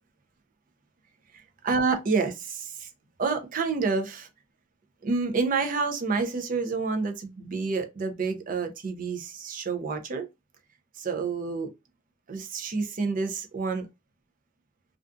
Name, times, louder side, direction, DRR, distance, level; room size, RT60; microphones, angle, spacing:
voice 1, 1.6-2.9 3.2-4.3 5.0-10.3 10.9-11.7 12.3-13.9, right 4 dB, 40° right, 0.5 m, -28 dB
2.5 x 2.3 x 2.4 m
head